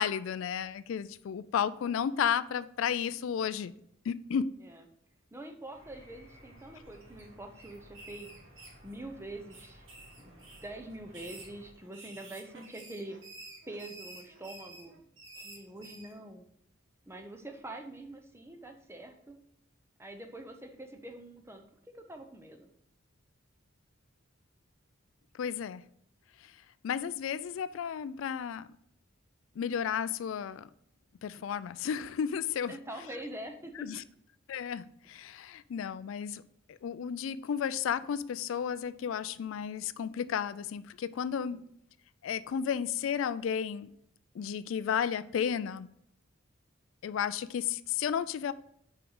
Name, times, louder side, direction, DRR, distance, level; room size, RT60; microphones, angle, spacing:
voice 1, 0.0-3.7 4.1-4.5 25.4-25.9 26.8-28.7 29.6-30.7 31.2-32.7 33.8-34.0 34.5-36.4 36.7-41.6 42.2-43.9 44.4-45.9 47.0-48.5, left 8 dB, 75° left, 0.3 m, -33 dB
voice 2, 5.3-8.3 8.8-9.9 10.2-13.2 13.7-15.0 15.4-16.5 17.1-19.4 20.0-22.7 32.7-33.9 41.5-41.7, right 1 dB, 10° right, 0.7 m, -45 dB
sound 1, 5.7-11.7, equal, 90° right, 2.3 m, -56 dB
sound 2, 6.5-7.2 7.5-9.1 9.5-10.7 11.1-16.1, right 2 dB, 65° right, 1.8 m, -50 dB
5.8 x 5.0 x 5.4 m
head